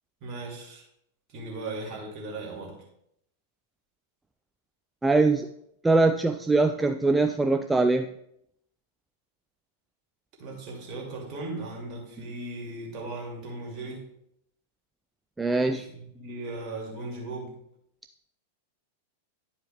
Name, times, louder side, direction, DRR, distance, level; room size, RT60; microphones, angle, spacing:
voice 1, 0.2-0.9 1.3-2.8 10.4-14.1 15.6-17.6, right 2 dB, 40° right, 0 dB, 2.5 m, -37 dB
voice 2, 5.0-5.5 5.8-8.1 15.4-15.9, right 3 dB, 10° right, 7 dB, 0.3 m, -22 dB
11.0 x 4.8 x 3.4 m, 0.74 s
figure-of-eight pair, 95°, 0 cm